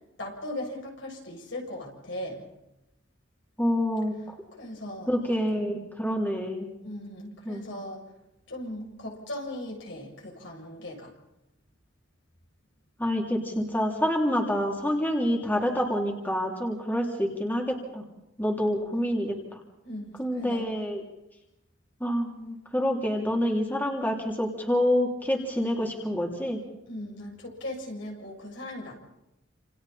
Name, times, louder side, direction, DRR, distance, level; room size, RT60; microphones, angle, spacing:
voice 1, 0.2-2.5 4.6-5.1 6.8-8.1 8.5-11.1 19.8-20.7 26.9-28.9, left 1 dB, 70° left, 0 dB, 7.6 m, -38 dB
voice 2, 3.6-4.1 5.1-6.7 7.5-7.7 13.0-18.0 18.4-19.6 20.2-21.0 22.0-26.6, equal, 10° left, 0 dB, 3.3 m, -27 dB
29.5 x 28.5 x 4.3 m, 0.92 s
head